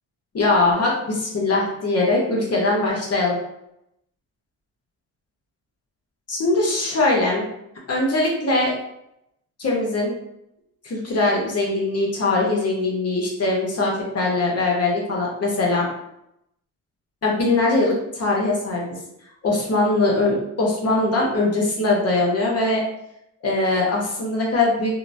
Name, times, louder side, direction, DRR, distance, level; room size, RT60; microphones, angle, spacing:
voice 1, 0.3-3.4 6.3-7.4 7.9-8.7 9.6-10.1 10.8-15.9 17.2-18.9 19.4-22.8 23.4-25.0, left 2 dB, 40° left, -2 dB, 0.8 m, -21 dB
2.8 x 2.1 x 2.5 m, 0.82 s
cardioid pair, 80°, 37 cm